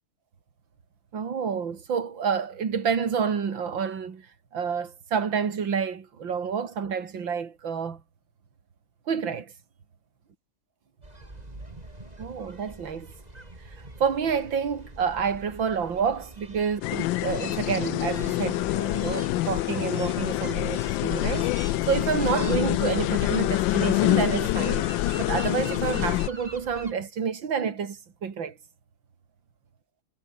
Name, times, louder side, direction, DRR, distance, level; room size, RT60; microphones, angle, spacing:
voice 1, 1.1-4.3 4.5-8.0 9.1-9.5 12.2-13.1 13.7-21.5 21.9-24.9 25.2-28.6, right 6 dB, 60° right, 3.1 m, -29 dB
sound 1, 11.0-26.9, right 1 dB, 20° right, 4.1 m, -44 dB
sound 2, 16.8-26.3, left 17 dB, 75° left, 1.2 m, -26 dB
omnidirectional pair, 2.3 m